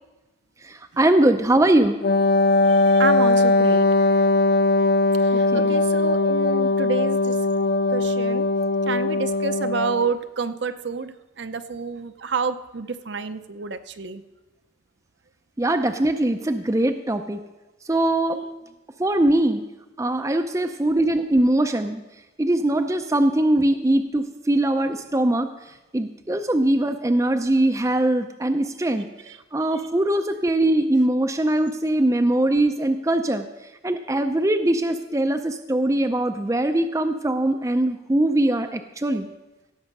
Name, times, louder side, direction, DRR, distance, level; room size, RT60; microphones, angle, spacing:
voice 1, 0.6-2.0 5.3-5.8 15.6-17.4 17.9-18.5 19.0-19.6 20.0-22.0 22.4-25.5 25.9-29.1 29.5-33.5 33.8-39.3, right 1 dB, 15° right, 7 dB, 0.5 m, -21 dB
Wind instrument woodwind instrument, 2.0-10.1, left 2 dB, 55° left, 0.4 m, -20 dB
voice 2, 2.6-4.3 5.2-7.4 7.9-8.5 8.9-14.2 29.7-29.8, right 4 dB, 60° right, 9 dB, 0.7 m, -29 dB
16.5 x 7.3 x 5.4 m, 1.1 s
head